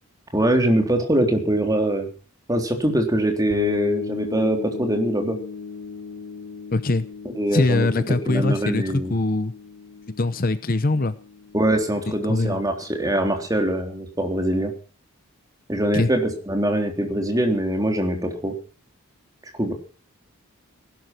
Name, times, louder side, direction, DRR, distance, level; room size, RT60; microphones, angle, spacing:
voice 1, 0.3-2.1 2.5-5.4 7.3-9.1 11.5-14.7 15.7-18.6 19.5-19.7, right 1 dB, 15° right, 3 dB, 3.5 m, -23 dB
sound 1, 3.5-13.1, left 4 dB, 70° left, 4.0 m, -38 dB
voice 2, 6.7-7.1 7.5-9.5 10.2-11.1 12.1-12.6 15.9-16.1, left 2 dB, 40° left, 13 dB, 0.8 m, -22 dB
19.0 x 12.0 x 6.0 m, 0.38 s
head